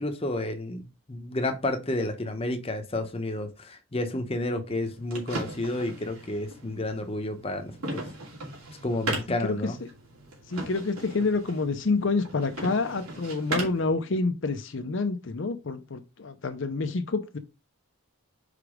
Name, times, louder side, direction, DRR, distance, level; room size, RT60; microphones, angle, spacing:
voice 1, 0.0-8.0 8.8-9.8, left 1 dB, 25° left, 0.8 m, -31 dB
sound 1, 4.7-13.9, right 2 dB, 85° right, 2.7 m, -38 dB
voice 2, 10.5-17.4, left 3 dB, 55° left, 0.6 m, -28 dB
5.0 x 4.7 x 4.9 m
head